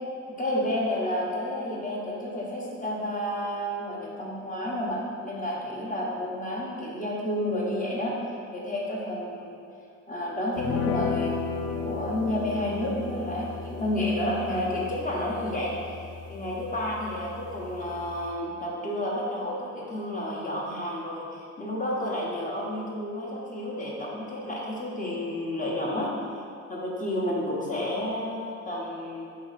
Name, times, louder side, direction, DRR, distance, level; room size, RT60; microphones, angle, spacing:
voice 1, 0.3-8.2 8.5-9.6 10.1-16.0 16.3-26.1 26.7-29.3, left 1 dB, 25° left, -4 dB, 1.0 m, -31 dB
sound 1, 10.6-18.3, left 5 dB, 55° left, 0.4 m, -34 dB
4.0 x 2.9 x 4.1 m, 2.4 s
cardioid pair, 90°, 30 cm